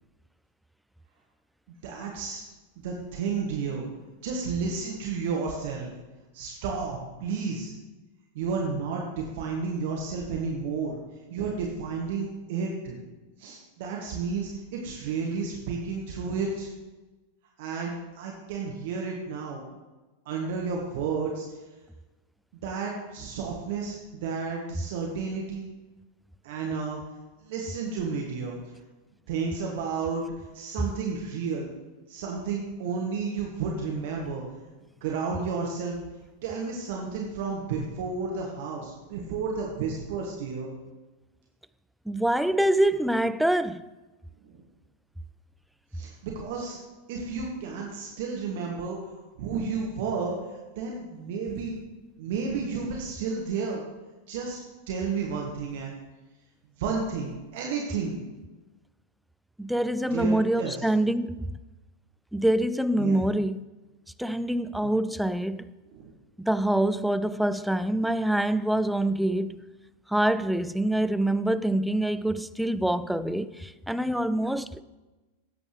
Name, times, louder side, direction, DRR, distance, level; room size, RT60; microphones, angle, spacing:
voice 1, 1.8-2.5 2.8-3.8 4.2-5.9 6.3-7.7 8.3-11.0 11.3-13.0 13.4-16.7 17.6-19.6 20.2-21.4 22.5-25.7 26.4-27.0 27.4-28.6 29.3-31.7 32.1-34.4 35.0-36.0 36.4-40.7 44.4-44.6 45.9-46.8 47.1-49.0 49.4-50.4 50.7-51.8 52.2-53.8 54.3-54.6 54.9-56.0 56.8-58.2 60.1-60.8 63.0-63.2 64.8-64.9 65.9-66.1, right 5 dB, 50° right, 1.4 m, -32 dB
voice 2, 42.1-43.9 59.6-61.6 62.3-63.6 64.2-65.7 66.4-69.6 70.1-74.8, right 1 dB, ahead, 0.3 m, -25 dB
16.0 x 7.9 x 3.3 m
figure-of-eight pair, 90°, 0 cm